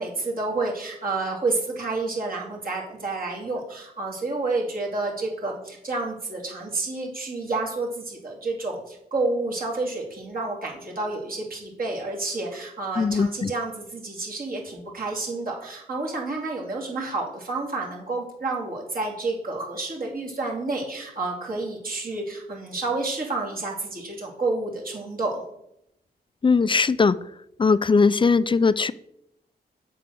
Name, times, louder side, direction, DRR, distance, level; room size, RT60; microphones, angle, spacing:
voice 1, 0.0-25.4, right 3 dB, 55° right, -3 dB, 2.5 m, -29 dB
voice 2, 13.0-13.5 26.4-27.1 27.6-28.9, left 4 dB, 30° left, 17 dB, 0.3 m, -19 dB
7.6 x 4.7 x 6.2 m, 0.79 s
cardioid pair, 65°, 17 cm